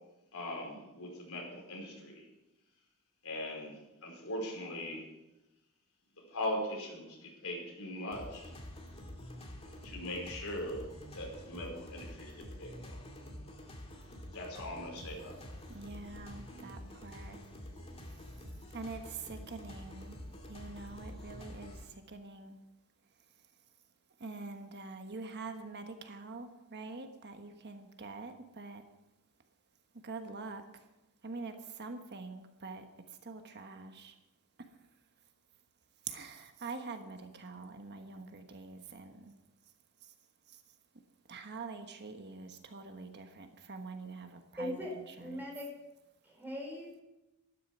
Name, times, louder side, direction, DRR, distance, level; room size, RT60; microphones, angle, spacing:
voice 1, 0.3-2.2 3.2-5.1 6.2-8.5 9.8-13.0 14.3-15.6, left 1 dB, 70° left, 0 dB, 4.9 m, -40 dB
sound 1, 8.1-21.8, left 1 dB, 25° left, 2.3 m, -48 dB
voice 2, 15.7-17.4 18.1-18.4 18.7-22.6 24.2-28.9 30.0-30.9 31.2-34.2 34.6-34.7 36.0-39.3 40.0-40.1 40.5-40.6 41.3-45.5, right 3 dB, 50° right, 6 dB, 1.2 m, -45 dB
voice 3, 44.6-45.7 46.2-47.0, left 1 dB, 10° right, -2 dB, 4.7 m, -40 dB
13.0 x 12.0 x 6.1 m, 0.96 s
head